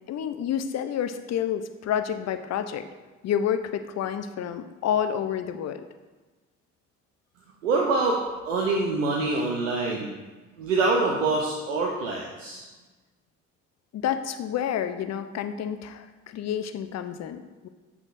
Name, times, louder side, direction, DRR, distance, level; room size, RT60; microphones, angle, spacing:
voice 1, 0.1-2.9 3.2-5.8 13.9-17.7, left 9 dB, 45° left, 9 dB, 0.6 m, -29 dB
voice 2, 7.6-10.1 10.6-12.6, right 3 dB, 90° right, -1 dB, 0.6 m, -25 dB
7.8 x 5.9 x 2.5 m, 1.2 s
hypercardioid pair, 50°, 37 cm